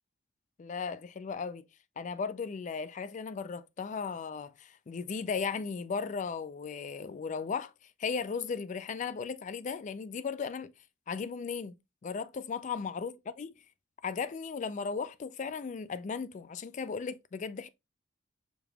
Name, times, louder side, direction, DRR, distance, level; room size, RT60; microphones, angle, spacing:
voice 1, 0.6-1.7 2.0-7.7 8.0-10.7 11.1-11.8 12.0-13.5 14.0-17.7, left 5 dB, 40° left, 0.3 m, -36 dB
5.1 x 3.2 x 2.2 m
head